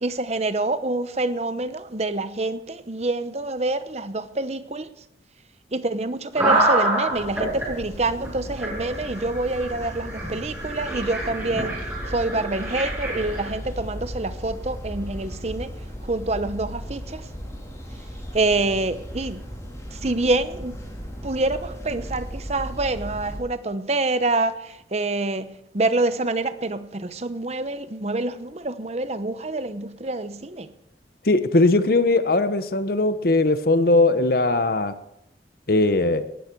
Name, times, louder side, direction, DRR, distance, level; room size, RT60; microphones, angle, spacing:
voice 1, 0.0-4.9 5.7-11.7 12.1-15.7 16.0-17.3 18.3-19.4 19.9-20.8 21.2-25.5 25.7-30.7, right 2 dB, 35° right, 0.8 m, -26 dB
sound 1, 6.4-7.7 8.2-8.3 8.6-13.5, right 2 dB, 10° right, 6.2 m, -26 dB
sound 2, 7.1-23.4, equal, 15° left, 4.1 m, -36 dB
voice 2, 31.2-34.9 35.7-36.3, left 2 dB, 55° left, 0.9 m, -19 dB
18.5 x 13.0 x 4.6 m
head